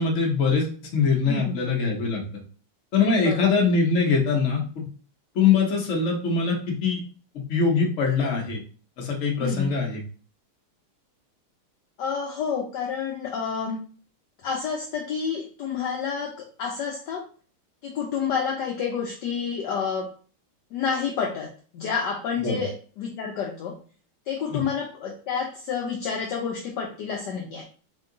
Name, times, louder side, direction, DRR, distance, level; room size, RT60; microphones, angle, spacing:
voice 1, 0.0-2.2 2.9-4.8 5.3-7.0 7.5-8.6 9.0-10.0 22.4-22.6 24.5-24.6, left 5 dB, 55° left, 0 dB, 0.9 m, -23 dB
voice 2, 1.3-1.7 3.2-3.5 9.4-9.7 12.0-13.8 14.4-16.3 16.6-17.2 17.8-20.1 20.7-21.5 21.7-23.7 24.3-27.6, left 6 dB, 75° left, -1 dB, 1.0 m, -29 dB
3.6 x 2.2 x 3.7 m, 0.40 s
omnidirectional pair, 2.3 m